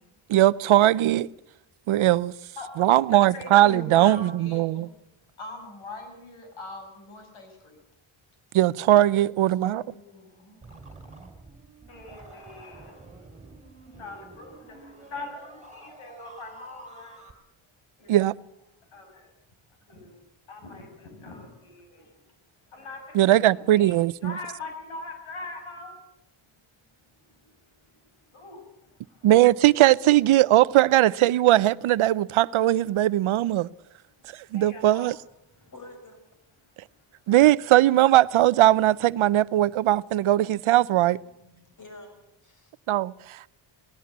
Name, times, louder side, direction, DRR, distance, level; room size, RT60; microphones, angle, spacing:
voice 1, 0.3-1.3 1.9-2.3 2.8-4.9 8.5-9.8 18.1-18.3 23.1-24.3 29.2-33.7 34.5-35.2 37.3-41.2 42.9-43.5, right 14 dB, 80° right, 0.7 m, -19 dB
voice 2, 3.1-4.9 5.4-7.8 9.2-10.7 11.9-13.1 14.0-17.2 18.0-18.2 18.9-19.3 19.9-22.1 22.7-23.9 24.2-26.0 27.4-27.5 28.3-28.7 34.5-35.2, left 2 dB, 75° left, 6.3 m, -42 dB
sound 1, 10.6-17.3, right 3 dB, 15° right, 3.7 m, -48 dB
voice 3, 35.5-36.2 41.3-42.7, left 2 dB, 35° left, 6.1 m, -49 dB
19.0 x 17.0 x 8.6 m
cardioid pair, 120°, 49 cm